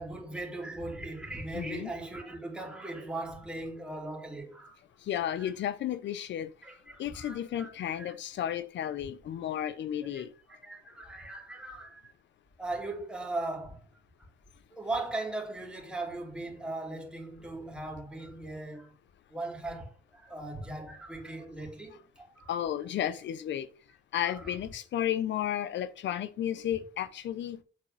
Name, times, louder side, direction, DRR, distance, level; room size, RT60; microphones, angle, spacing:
voice 1, 0.0-4.7 5.4-5.5 6.6-8.1 10.0-12.1 12.6-13.8 14.2-14.3 14.7-18.9 19.3-22.5 24.2-24.5, right 2 dB, 5° right, 2.8 m, -39 dB
voice 2, 1.5-1.9 5.0-6.5 7.0-10.3 22.5-23.7 24.1-27.6, left 10 dB, 65° left, 0.7 m, -33 dB
7.5 x 4.1 x 6.1 m
cardioid pair, 90°, 20 cm